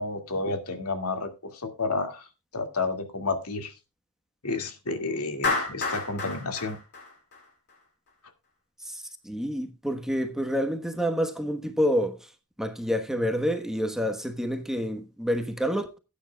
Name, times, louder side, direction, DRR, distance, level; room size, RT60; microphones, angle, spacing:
voice 1, 0.0-2.3 2.5-3.7 4.4-6.8, left 3 dB, 80° left, 2.2 m, -31 dB
Clapping, 5.4-7.7, left 3 dB, 50° left, 5.8 m, -30 dB
voice 2, 8.8-12.3 12.6-16.0, equal, ahead, 1.2 m, -28 dB
17.5 x 9.4 x 2.3 m
head